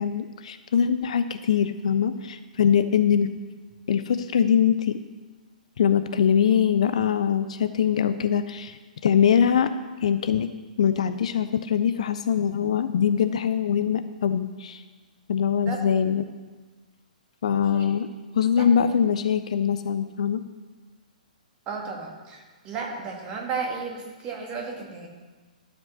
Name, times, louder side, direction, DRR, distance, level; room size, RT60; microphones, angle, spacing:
voice 1, 0.0-3.3 3.9-5.0 5.8-9.7 10.0-10.5 10.8-14.8 15.3-16.3 17.4-18.1 18.4-20.4, left 8 dB, 50° left, 11 dB, 0.5 m, -23 dB
voice 2, 21.7-25.1, right 5 dB, 20° right, 0 dB, 2.0 m, -34 dB
12.5 x 5.2 x 6.4 m, 1.3 s
figure-of-eight pair, 120°, 5 cm